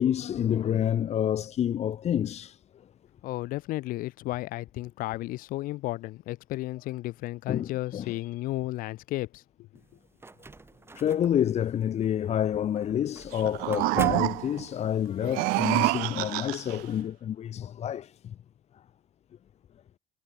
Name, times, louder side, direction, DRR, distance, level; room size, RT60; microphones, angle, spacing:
voice 1, 0.0-2.6 7.5-8.1 10.9-18.3, left 10 dB, 50° left, 1.7 m, -28 dB
voice 2, 3.2-9.4, left 18 dB, 75° left, 5.5 m, -33 dB
sound 1, 9.8-15.1, right 3 dB, 15° right, 3.7 m, -43 dB
sound 2, 13.3-14.7 15.2-16.8, right 26 dB, 85° right, 0.5 m, -27 dB
cardioid pair, 105°, 14 cm